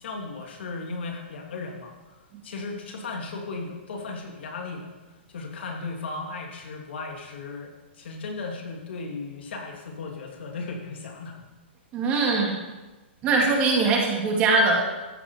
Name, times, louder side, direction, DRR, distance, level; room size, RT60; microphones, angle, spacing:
voice 1, 0.0-2.1 2.4-4.9 5.3-7.7 8.0-11.4, left 3 dB, 65° left, 1 dB, 2.9 m, -36 dB
voice 2, 11.9-12.6 13.2-14.8, right 3 dB, 20° right, 0 dB, 2.1 m, -21 dB
14.0 x 8.9 x 5.0 m, 1.1 s
hypercardioid pair, 170°, 6 cm